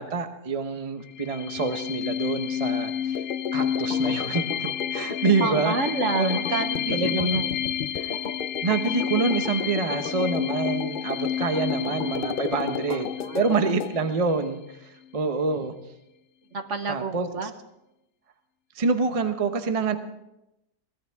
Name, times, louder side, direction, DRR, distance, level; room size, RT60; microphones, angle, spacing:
voice 1, 0.0-3.2 3.5-5.7 6.1-6.4 6.9-7.4 7.9-8.2 8.6-13.1 13.3-15.7 16.9-17.5 18.7-20.0, right 4 dB, 25° right, 7 dB, 0.9 m, -26 dB
sound 1, 1.1-14.5, left 9 dB, 60° left, 0.9 m, -30 dB
sound 2, 3.1-13.9, left 7 dB, 90° left, 0.4 m, -35 dB
voice 2, 5.4-7.5 11.9-12.2 12.9-13.6 16.5-17.5, right 4 dB, 50° right, 7 dB, 1.3 m, -30 dB
22.5 x 17.0 x 3.5 m, 0.90 s
omnidirectional pair, 1.7 m